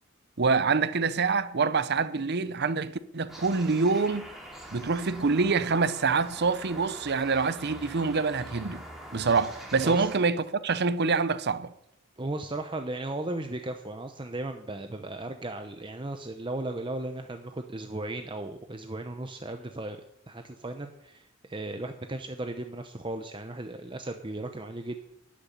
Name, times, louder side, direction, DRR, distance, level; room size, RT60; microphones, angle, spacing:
voice 1, 0.4-4.3 4.7-8.8 9.1-11.7, right 4 dB, 55° right, 0.7 m, -26 dB
sound 1, 3.3-10.2, right 1 dB, ahead, 2.7 m, -44 dB
voice 2, 12.2-20.0 20.3-25.0, right 2 dB, 25° right, 0.8 m, -36 dB
13.0 x 6.9 x 9.9 m
head